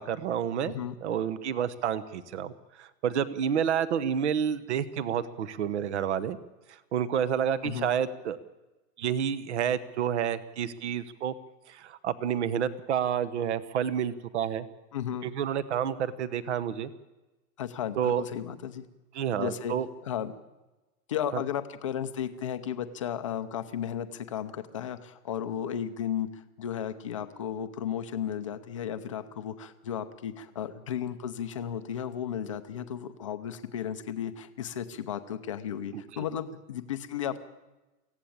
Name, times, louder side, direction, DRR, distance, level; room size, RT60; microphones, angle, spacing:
voice 1, 0.0-0.7 1.0-2.5 2.8-6.4 6.7-8.4 9.0-11.3 11.7-14.7 15.2-16.9 18.0-18.2 19.1-19.9 21.3-21.4 35.9-36.0, right 8 dB, 45° right, 16 dB, 1.1 m, -29 dB
voice 2, 0.6-1.0 7.6-7.9 14.9-15.3 17.6-18.8 19.4-19.7 20.0-20.3 21.1-37.4, left 9 dB, 20° left, 8 dB, 0.6 m, -34 dB
24.0 x 16.0 x 8.7 m, 1.1 s
hypercardioid pair, 175°, 48 cm